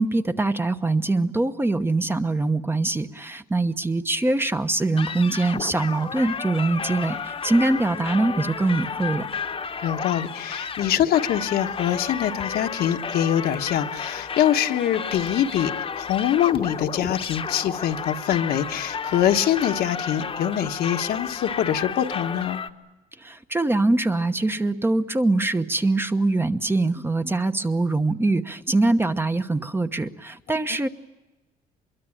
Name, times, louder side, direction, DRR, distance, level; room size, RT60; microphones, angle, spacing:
voice 1, 0.0-9.3 23.2-30.9, right 2 dB, 15° right, 8 dB, 1.0 m, -23 dB
sound 1, 5.0-22.7, left 6 dB, 35° left, 1.2 m, -32 dB
voice 2, 9.8-22.6, left 10 dB, 70° left, 6 dB, 1.4 m, -24 dB
24.5 x 22.5 x 8.7 m, 1.1 s
cardioid pair, 110°, 17 cm